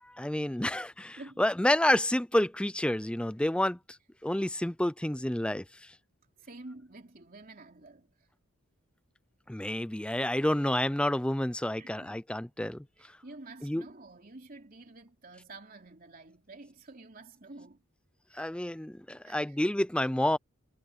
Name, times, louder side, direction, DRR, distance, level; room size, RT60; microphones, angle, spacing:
voice 1, 0.0-3.8 4.2-5.9 9.5-12.8 13.6-13.8 18.3-20.4, left 1 dB, 5° left, 0.4 m, -29 dB
voice 2, 6.4-8.3 11.8-12.2 13.0-17.8 18.3-18.5 19.2-19.6, right 2 dB, 40° right, 3.1 m, -50 dB
head